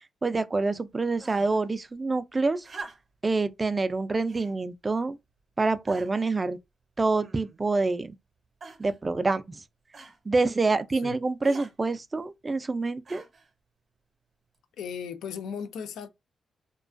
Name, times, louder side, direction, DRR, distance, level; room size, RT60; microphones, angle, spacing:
voice 1, 0.2-2.7 3.2-5.2 5.6-6.6 7.0-8.1 8.8-9.6 10.3-13.2, right 3 dB, 30° right, 0.3 m, -26 dB
sound 1, 1.2-1.7 2.6-3.3 4.3-4.6 5.3-5.4 5.9-6.3 7.1-7.7 8.6-9.0 9.9-10.2 11.4-11.7 13.0-13.5 14.5-14.6, right 3 dB, 50° right, 0.7 m, -45 dB
voice 2, 14.8-16.1, left 7 dB, 90° left, 0.3 m, -36 dB
2.3 x 2.2 x 2.4 m
cardioid pair, 60°, 0 cm